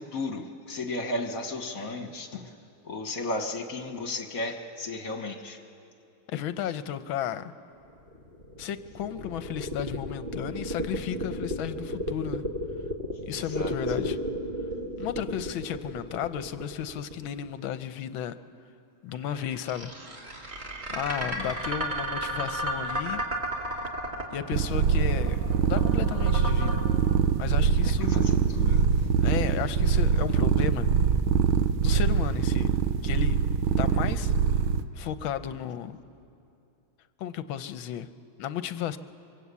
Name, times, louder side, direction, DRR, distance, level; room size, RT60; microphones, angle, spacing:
voice 1, 0.0-2.5 2.8-5.6 13.4-13.7 21.2-21.6 27.8-28.9, left 2 dB, 45° left, 5 dB, 1.8 m, -34 dB
voice 2, 6.3-7.5 8.6-12.4 13.3-14.2 15.0-18.4 19.0-19.9 20.9-23.2 24.3-26.8 27.4-28.2 29.2-30.9 31.8-32.7 33.0-33.4 33.8-34.3 34.9-36.0 37.2-38.1 38.4-39.0, left 9 dB, 75° left, 11 dB, 1.5 m, -33 dB
sound 1, 7.9-17.8 19.1-26.8, equal, 30° right, 2.8 m, -34 dB
sound 2, 24.5-34.8, right 7 dB, 80° right, 1.7 m, -24 dB
26.0 x 24.0 x 8.3 m, 2.6 s
omnidirectional pair, 2.3 m